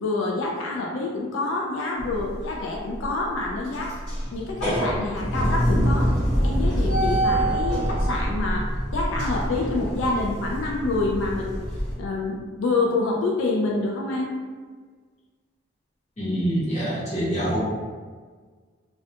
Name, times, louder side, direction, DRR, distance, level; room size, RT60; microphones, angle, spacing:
voice 1, 0.0-4.0 4.3-6.1 6.4-11.6 12.0-14.3, left 2 dB, 85° left, -1 dB, 0.3 m, -27 dB
sound 1, 2.0-2.5 2.9-3.1 3.5-11.9, equal, 5° left, 0.8 m, -25 dB
voice 2, 16.2-17.6, equal, 35° left, -9 dB, 0.9 m, -25 dB
2.3 x 2.2 x 2.7 m, 1.5 s
head